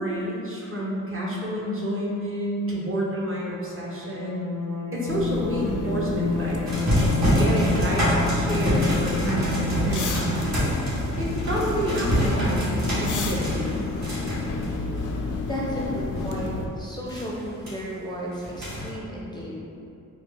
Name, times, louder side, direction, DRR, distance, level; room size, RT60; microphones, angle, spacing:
voice 1, 0.0-4.4 4.9-6.6 7.3-10.1 11.2-13.7, right 1 dB, 40° right, -5 dB, 0.8 m, -29 dB
sound 1, 3.6-10.4, left 3 dB, 75° right, 0.8 m, -30 dB
sound 2, 5.1-16.7, left 3 dB, 65° left, 0.5 m, -30 dB
sound 3, 6.7-15.5 16.0-16.5 17.1-17.7 18.3-18.9, equal, 55° right, 1.4 m, -26 dB
voice 2, 15.4-19.6, equal, 15° left, -6 dB, 0.4 m, -33 dB
4.4 x 2.3 x 3.3 m, 2.7 s
wide cardioid pair, 110°, 32 cm